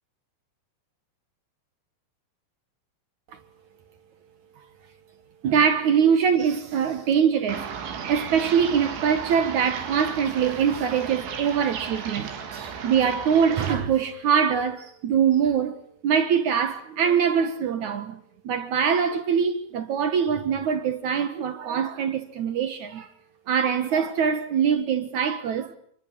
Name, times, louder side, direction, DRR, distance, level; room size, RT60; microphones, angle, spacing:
voice 1, 5.4-7.7 8.1-15.8 16.0-23.1 23.5-25.7, right 7 dB, 60° right, 2.0 m, -23 dB
sound 1, 7.5-13.8, right 7 dB, 90° right, 5.6 m, -35 dB
29.5 x 22.0 x 8.7 m
omnidirectional pair, 5.2 m